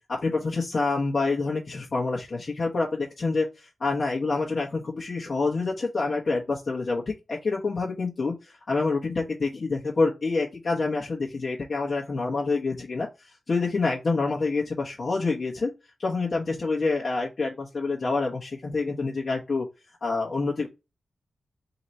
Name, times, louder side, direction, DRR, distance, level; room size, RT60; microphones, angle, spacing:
voice 1, 0.1-13.1 13.5-15.7 16.0-19.6 20.0-20.7, left 3 dB, 50° left, -4 dB, 1.2 m, -27 dB
4.0 x 2.9 x 4.3 m, 0.26 s
wide cardioid pair, 110°, 0 cm